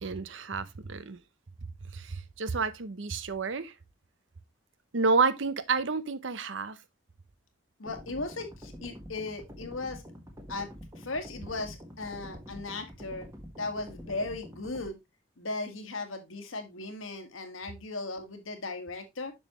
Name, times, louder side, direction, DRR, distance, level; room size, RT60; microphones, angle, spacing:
voice 1, 0.0-1.2 1.9-3.7 4.9-6.8, right 4 dB, 70° right, 0.7 m, -29 dB
voice 2, 7.8-10.0 10.5-13.3 13.6-15.0 15.4-19.3, left 3 dB, 90° left, 1.7 m, -37 dB
sound 1, 7.9-14.9, equal, 15° right, 1.4 m, -47 dB
7.1 x 6.3 x 3.0 m
head